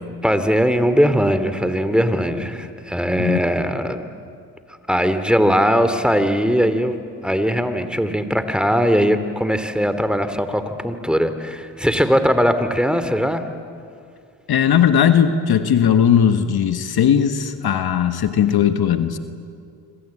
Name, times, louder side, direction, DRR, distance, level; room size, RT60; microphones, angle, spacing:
voice 1, 0.2-4.0 4.9-13.4, equal, ahead, 10 dB, 2.7 m, -20 dB
voice 2, 14.5-19.2, left 8 dB, 60° left, 9 dB, 1.6 m, -17 dB
26.5 x 26.0 x 8.7 m, 2.3 s
supercardioid pair, 55°, 42 cm